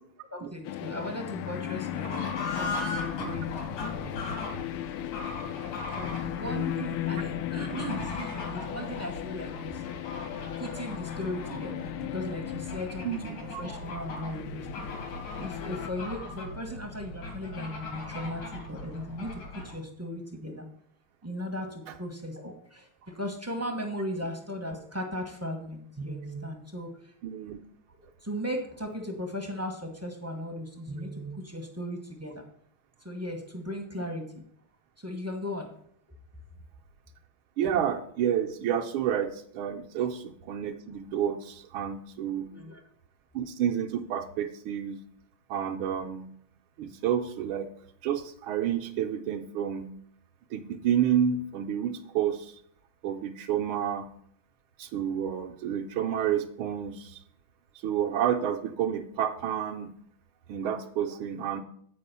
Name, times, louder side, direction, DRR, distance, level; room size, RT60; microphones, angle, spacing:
voice 1, 0.3-4.1 5.9-9.8 10.6-14.9 15.4-20.6 21.2-27.1 28.2-32.4 33.0-34.4 35.0-35.7 42.4-42.8, equal, 10° right, 2 dB, 0.7 m, -37 dB
sound 1, 0.6-15.9, left 13 dB, 90° left, 1.5 m, -36 dB
Fowl / Bird, 1.7-19.8, left 2 dB, 70° left, 2.8 m, -39 dB
voice 2, 13.0-13.6 27.2-27.6 37.6-42.5 43.3-45.0 45.5-46.3 46.8-47.7 48.0-49.9 50.5-52.6 53.0-54.1 54.8-57.2 57.8-59.9 60.5-61.6, right 9 dB, 75° right, 4 dB, 1.5 m, -30 dB
8.5 x 4.9 x 6.7 m, 0.65 s
omnidirectional pair, 2.3 m